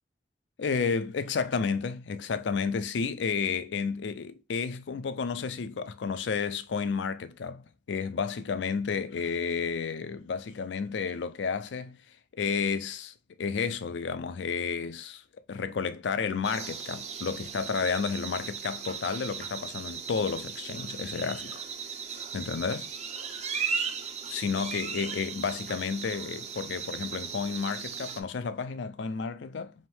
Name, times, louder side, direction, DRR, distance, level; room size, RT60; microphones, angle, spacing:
voice 1, 0.6-12.0 12.3-15.2 15.5-21.6 22.3-22.9 24.3-29.7, left 5 dB, 80° left, 0.4 m, -31 dB
sound 1, 16.4-28.2, right 6 dB, 40° right, 0.6 m, -37 dB
3.5 x 2.7 x 4.4 m
head